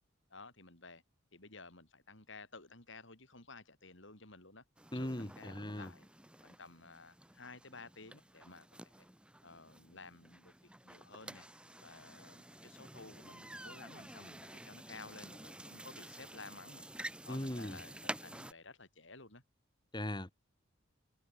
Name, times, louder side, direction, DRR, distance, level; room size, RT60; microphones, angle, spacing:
voice 1, 0.3-1.0 1.3-4.6 4.9-6.1 6.4-9.0 9.4-19.4, left 3 dB, 60° left, 5.0 m, -54 dB
sound 1, 4.8-18.5, right 1 dB, 5° right, 2.0 m, -50 dB
voice 2, 4.9-5.9 17.3-17.8 19.9-20.3, left 1 dB, 20° left, 2.3 m, -39 dB
head